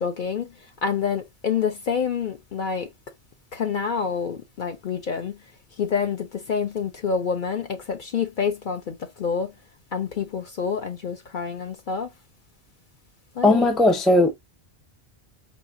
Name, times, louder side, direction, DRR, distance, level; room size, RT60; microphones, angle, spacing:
voice 1, 0.0-2.9 3.5-9.5 9.9-12.1 13.3-13.7, left 6 dB, 55° left, 0.7 m, -28 dB
voice 2, 13.4-14.3, left 2 dB, ahead, 0.4 m, -17 dB
4.4 x 2.8 x 2.4 m
omnidirectional pair, 1.1 m